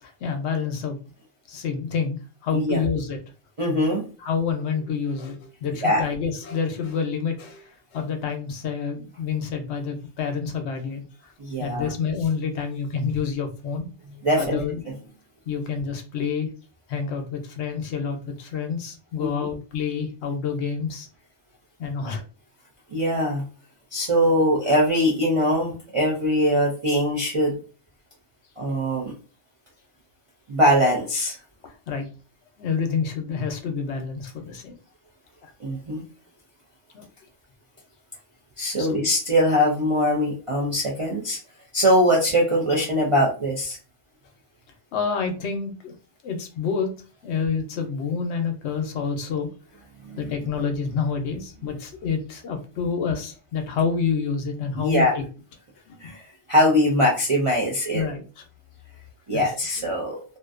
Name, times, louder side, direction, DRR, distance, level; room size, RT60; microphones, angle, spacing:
voice 1, 0.0-1.0 1.5-3.2 4.2-11.3 11.6-13.9 14.3-14.8 15.5-16.5 16.9-21.1 21.8-22.2 31.6-32.1 32.6-34.8 35.4-35.5 36.9-37.0 38.8-39.1 44.9-45.9 46.2-46.9 47.2-49.5 50.2-55.2 55.9-56.1 57.9-58.2 59.3-59.4, left 6 dB, 70° left, 5 dB, 0.8 m, -28 dB
voice 2, 3.6-4.0 5.8-6.0 11.4-11.9 14.2-14.6 19.2-19.3 22.9-23.4 23.9-27.5 28.6-29.1 30.5-31.4 35.6-36.0 38.6-41.4 41.7-43.8 50.1-50.2 54.8-55.1 56.0-58.0 59.3-60.2, equal, 45° right, -4 dB, 0.4 m, -22 dB
2.5 x 2.2 x 2.4 m, 0.35 s
omnidirectional pair, 1.2 m